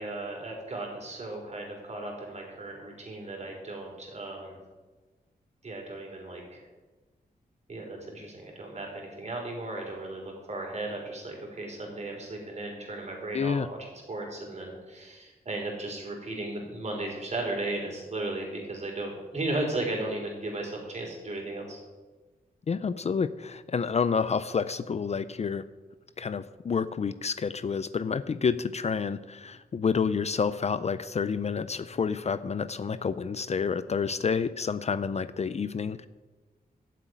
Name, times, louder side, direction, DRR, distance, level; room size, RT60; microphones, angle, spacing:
voice 1, 0.0-4.5 5.6-6.6 7.7-13.8 14.1-21.8, right 2 dB, 45° right, 1 dB, 4.1 m, -35 dB
voice 2, 13.3-13.7 22.7-25.6 26.2-36.1, left 6 dB, 40° left, 13 dB, 0.5 m, -29 dB
13.0 x 7.6 x 9.3 m, 1.3 s
wide cardioid pair, 145°, 16 cm